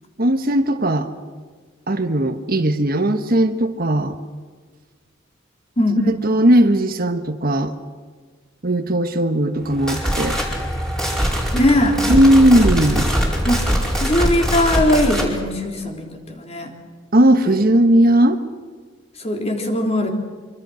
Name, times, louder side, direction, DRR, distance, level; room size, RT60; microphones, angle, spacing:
voice 1, 0.2-1.1 1.9-4.2 6.1-7.7 8.6-10.4 12.1-13.1 17.1-18.4, right 1 dB, 50° right, 8 dB, 1.4 m, -17 dB
sound 1, 9.6-15.3, equal, 5° left, 5.1 m, -22 dB
voice 2, 11.5-12.0 13.4-13.7 13.9-16.7 17.4-17.6 19.2-20.1, left 1 dB, 35° left, 2 dB, 3.7 m, -20 dB
26.0 x 25.0 x 6.5 m, 1.5 s
head